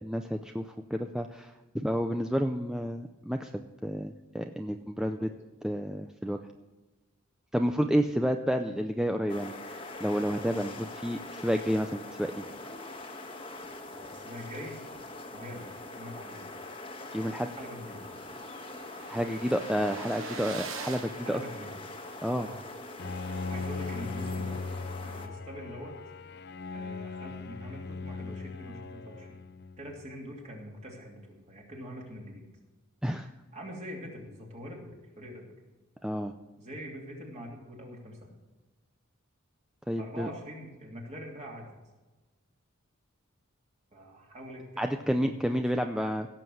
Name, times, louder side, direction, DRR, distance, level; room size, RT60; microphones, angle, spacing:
voice 1, 0.0-5.3 5.6-6.4 7.5-12.4 17.1-17.5 19.1-21.4 22.2-22.5 33.0-33.3 36.0-36.3 39.9-40.3 44.8-46.3, equal, 5° right, 5 dB, 0.4 m, -30 dB
sound 1, 9.3-25.3, left 2 dB, 25° left, 1.4 m, -43 dB
voice 2, 13.9-14.8 15.3-16.5 17.6-18.1 21.2-21.8 22.4-22.6 23.5-24.6 25.0-25.9 26.7-29.4 29.8-32.4 33.5-35.5 36.6-38.3 40.0-41.7 43.9-45.6, equal, 35° right, -1 dB, 3.0 m, -44 dB
sound 2, 16.7-16.8 17.1-17.2 17.3-22.2, right 5 dB, 65° right, 1.1 m, -44 dB
Bowed string instrument, 23.0-30.1, left 4 dB, 50° left, 0.6 m, -39 dB
16.5 x 7.5 x 6.4 m, 1.2 s
head